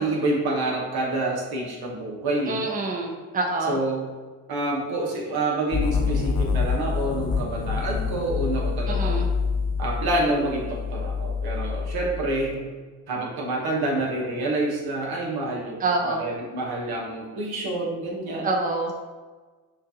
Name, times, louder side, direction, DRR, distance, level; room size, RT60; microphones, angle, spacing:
voice 1, 0.0-2.7 3.7-4.1 4.5-9.2 9.8-12.7 13.1-15.8 16.0-18.5, right 2 dB, 70° right, -2 dB, 1.2 m, -27 dB
voice 2, 2.5-3.8 8.9-9.3 15.8-16.3 18.4-18.9, right 3 dB, 20° right, 1 dB, 0.7 m, -26 dB
sound 1, 5.7-12.5, left 5 dB, 60° left, 0.6 m, -27 dB
6.2 x 2.5 x 2.9 m, 1.4 s
supercardioid pair, 50°, 38 cm